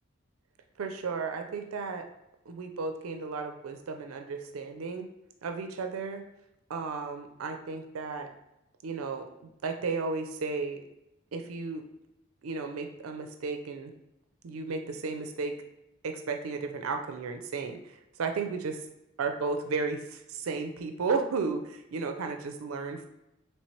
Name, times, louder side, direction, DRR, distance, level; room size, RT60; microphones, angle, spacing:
voice 1, 0.8-2.1 2.5-5.1 5.4-6.2 6.7-8.3 8.8-9.3 9.6-10.8 11.3-11.9 12.4-13.9 14.4-15.5 16.0-18.8 19.2-23.1, right 4 dB, 80° right, 6 dB, 0.4 m, -34 dB
4.3 x 3.1 x 3.1 m, 0.89 s
head